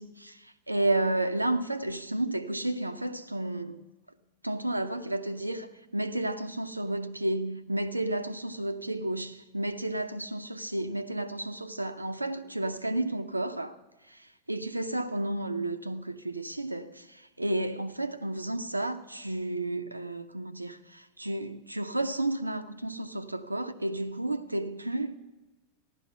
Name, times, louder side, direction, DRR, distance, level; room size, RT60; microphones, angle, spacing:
voice 1, 0.0-3.8 4.4-13.8 14.1-14.2 14.5-25.2, right 1 dB, 85° right, 0.6 m, -32 dB
15.0 x 11.5 x 5.7 m
figure-of-eight pair, 90°, 0 cm